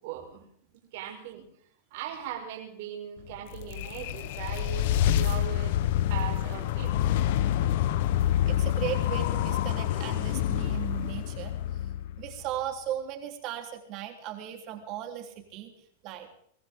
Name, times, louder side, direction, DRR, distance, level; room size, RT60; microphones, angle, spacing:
voice 1, 0.0-0.5 0.7-1.5 1.9-5.8 6.1-7.0, right 9 dB, 60° right, 0 dB, 5.3 m, -39 dB
sound 1, 3.3-12.6, left 11 dB, 60° left, 1.1 m, -27 dB
voice 2, 8.5-11.9 12.2-16.3, right 11 dB, 40° right, 4 dB, 3.6 m, -37 dB
23.0 x 15.5 x 3.7 m, 0.68 s
supercardioid pair, 145°, 0 cm